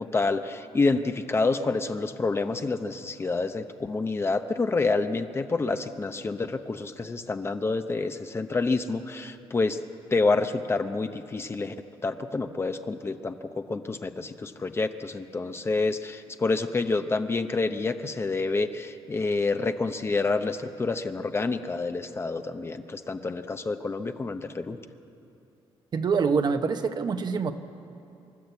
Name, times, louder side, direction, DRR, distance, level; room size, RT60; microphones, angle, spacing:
voice 1, 0.0-9.8 10.1-11.8 12.0-24.8, left 3 dB, 25° left, 8 dB, 0.8 m, -28 dB
voice 2, 25.9-27.5, right 5 dB, 45° right, 7 dB, 1.0 m, -25 dB
26.5 x 12.5 x 8.3 m, 2.7 s
cardioid pair, 130°, 10 cm